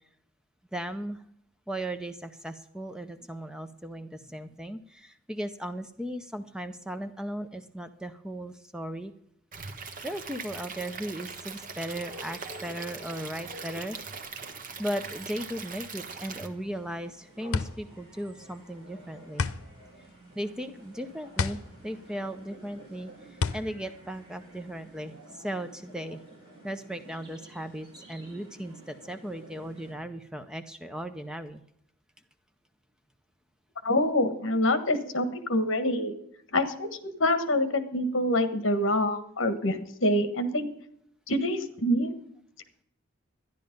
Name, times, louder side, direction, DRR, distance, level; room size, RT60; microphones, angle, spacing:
voice 1, 0.7-1.2 1.7-9.1 10.0-14.0 14.8-19.5 20.3-26.2 26.6-31.6, right 1 dB, 5° right, 9 dB, 0.5 m, -37 dB
Stream / Liquid, 9.5-16.5, right 5 dB, 40° right, 1.2 m, -41 dB
sound 1, 11.4-29.9, right 1 dB, 25° right, 5.0 m, -51 dB
sound 2, 16.7-25.0, left 4 dB, 90° left, 0.7 m, -34 dB
voice 2, 33.8-36.1 36.5-40.7 41.3-42.1, left 1 dB, 60° left, 10 dB, 1.5 m, -26 dB
12.5 x 10.5 x 5.3 m, 0.72 s
head